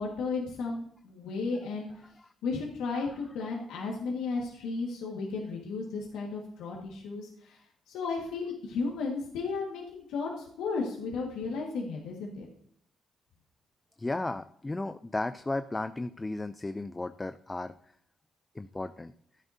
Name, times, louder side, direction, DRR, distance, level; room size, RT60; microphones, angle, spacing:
voice 1, 0.0-12.5, left 4 dB, 90° left, -2 dB, 1.7 m, -34 dB
voice 2, 14.0-17.7 18.6-19.1, left 2 dB, 20° left, 11 dB, 0.4 m, -34 dB
12.5 x 10.5 x 2.8 m, 0.66 s
cardioid pair, 90°, 0 cm